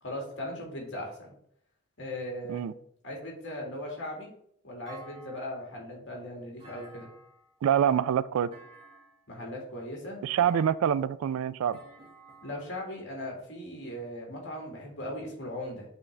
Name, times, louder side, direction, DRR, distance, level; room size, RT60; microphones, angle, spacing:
voice 1, 0.0-1.3 2.0-2.7 3.0-4.3 4.6-7.1 9.3-10.2 12.4-15.9, left 1 dB, 55° left, -1 dB, 2.0 m, -38 dB
Thump thud, 4.9-5.8 6.6-7.5 8.5-9.3 10.4-11.1 11.7-12.7, right 2 dB, 25° right, 1.4 m, -52 dB
voice 2, 7.6-8.5 10.2-11.8, right 9 dB, 80° right, 18 dB, 0.3 m, -26 dB
8.2 x 3.9 x 3.3 m, 0.68 s
head